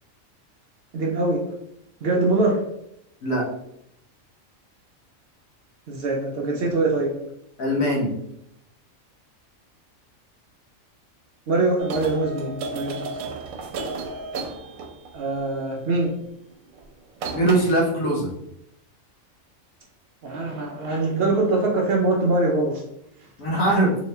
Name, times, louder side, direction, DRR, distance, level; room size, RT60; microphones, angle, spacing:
voice 1, 0.9-1.5 2.0-2.6 5.9-7.2 11.5-13.2 15.1-16.2 20.2-22.8, right 2 dB, 65° right, 0 dB, 0.6 m, -23 dB
voice 2, 7.6-8.1 17.3-18.3 23.4-24.0, right 1 dB, 85° left, -2 dB, 1.4 m, -21 dB
sound 1, 11.8-15.2 16.7-16.9 17.2-17.9, right 3 dB, 85° right, 1.0 m, -33 dB
3.0 x 2.8 x 3.2 m, 0.78 s
omnidirectional pair, 1.4 m